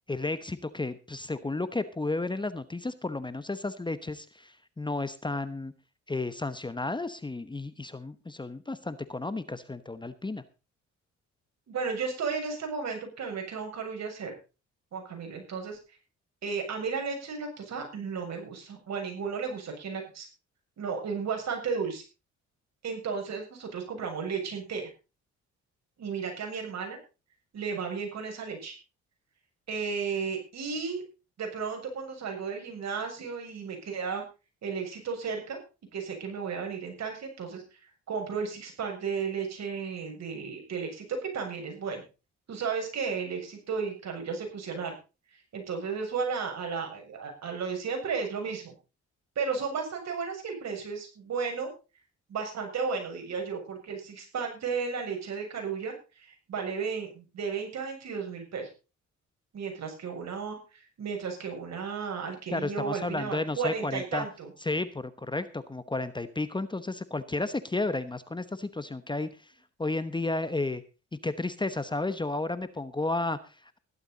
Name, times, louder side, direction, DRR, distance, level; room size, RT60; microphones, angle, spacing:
voice 1, 0.1-5.7 6.1-10.4 62.5-64.3 64.6-69.5 69.8-70.8 71.2-73.8, left 2 dB, 15° left, 13 dB, 1.1 m, -32 dB
voice 2, 11.7-14.3 14.9-16.0 16.4-20.3 20.8-22.0 22.8-24.9 26.0-27.0 27.5-28.8 29.7-31.0 31.4-34.2 34.6-35.6 35.9-37.8 38.1-42.0 42.5-44.9 45.5-48.7 49.4-51.7 52.3-58.7 59.5-64.5, right 5 dB, 60° right, 3 dB, 7.3 m, -34 dB
15.0 x 12.5 x 4.1 m, 0.31 s
cardioid pair, 90°, 30 cm